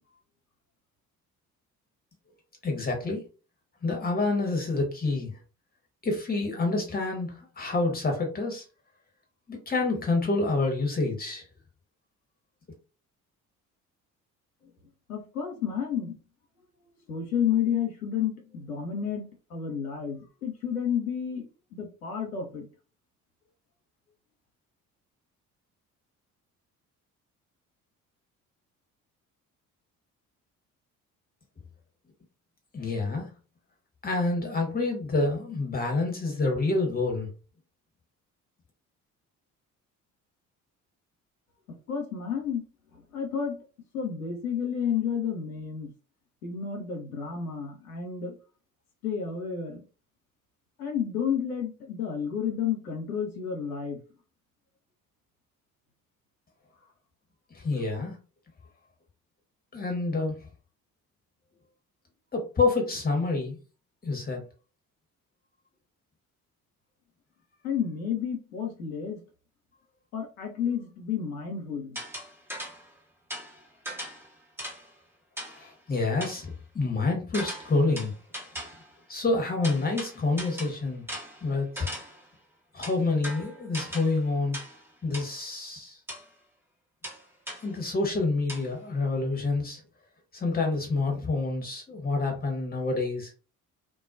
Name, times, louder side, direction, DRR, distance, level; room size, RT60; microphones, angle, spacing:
voice 1, 2.6-3.2 3.8-5.3 6.0-8.6 9.5-11.4 32.7-33.3 34.0-37.3 57.5-58.1 59.7-60.4 62.3-63.6 64.0-64.4 75.5-78.1 79.1-81.0 81.4-81.9 82.7-84.6 85.0-86.0 87.6-89.8 90.3-93.3, left 3 dB, 20° left, 1.2 m, -28 dB
voice 2, 15.1-16.2 17.1-22.7 41.9-42.6 43.1-43.6 43.9-45.9 46.4-48.3 49.0-49.8 50.8-54.0 67.6-69.2 70.1-72.0, left 7 dB, 80° left, 0.8 m, -31 dB
sound 1, 72.0-72.9 73.3-74.9 75.4-75.7 76.2-76.5 77.3-78.9 79.6-82.3 82.8-84.2 84.5-84.9 85.1-85.4 86.1-86.3 87.0-87.7 88.5-88.7, equal, 5° right, 1.0 m, -39 dB
2.3 x 2.2 x 2.4 m
figure-of-eight pair, 45°, 43 cm